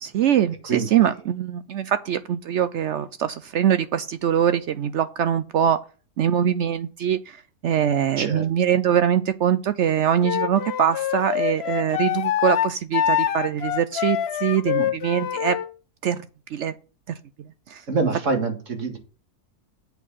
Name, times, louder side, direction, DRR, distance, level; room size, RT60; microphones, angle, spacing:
voice 1, 0.0-5.8 6.2-15.6 16.0-16.3 16.5-16.7 17.7-17.8, right 9 dB, 70° right, 0.6 m, -23 dB
Wind instrument woodwind instrument, 10.2-15.7, left 10 dB, 70° left, 0.6 m, -25 dB
voice 2, 17.9-19.0, right 4 dB, 50° right, 2.1 m, -25 dB
8.2 x 4.5 x 7.2 m
omnidirectional pair, 1.7 m